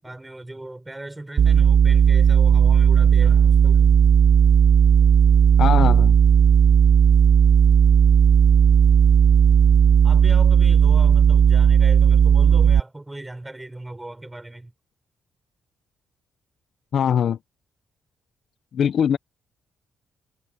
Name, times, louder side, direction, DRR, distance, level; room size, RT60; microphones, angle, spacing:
voice 1, 0.0-4.0 10.0-14.7, right 2 dB, 15° right, 6.2 m, -38 dB
sound 1, 1.4-12.8, right 8 dB, 60° right, 0.3 m, -15 dB
voice 2, 5.6-6.2 16.9-17.4 18.7-19.2, left 8 dB, 65° left, 0.9 m, -21 dB
cardioid pair, 75°, 0 cm